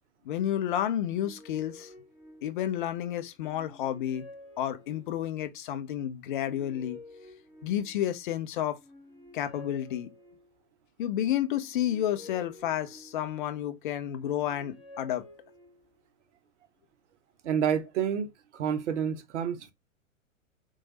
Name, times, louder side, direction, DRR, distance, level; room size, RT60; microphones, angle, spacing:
voice 1, 0.3-1.9 2.4-4.3 4.6-7.0 7.6-8.8 9.3-10.1 11.0-15.3, left 11 dB, 40° left, 0.5 m, -31 dB
sound 1, 0.8-2.9 3.4-5.4 6.1-8.2 8.7-10.7 11.4-13.6 14.0-16.1, left 2 dB, 5° right, 1.8 m, -51 dB
voice 2, 17.4-18.3 18.5-19.7, right 8 dB, 60° right, 0.6 m, -29 dB
3.0 x 2.3 x 2.8 m
figure-of-eight pair, 105°, 41 cm